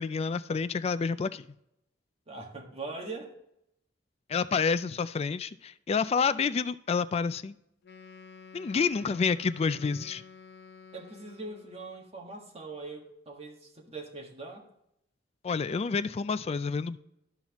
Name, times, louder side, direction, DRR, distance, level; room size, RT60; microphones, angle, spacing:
voice 1, 0.0-1.5 4.3-7.6 8.5-10.2 15.4-17.0, left 5 dB, 35° left, 15 dB, 0.3 m, -29 dB
voice 2, 2.3-3.4 10.9-14.6, right 3 dB, 35° right, 1 dB, 1.6 m, -42 dB
Wind instrument woodwind instrument, 7.8-11.9, left 5 dB, 60° left, 0.7 m, -51 dB
12.0 x 5.7 x 3.0 m, 0.80 s
head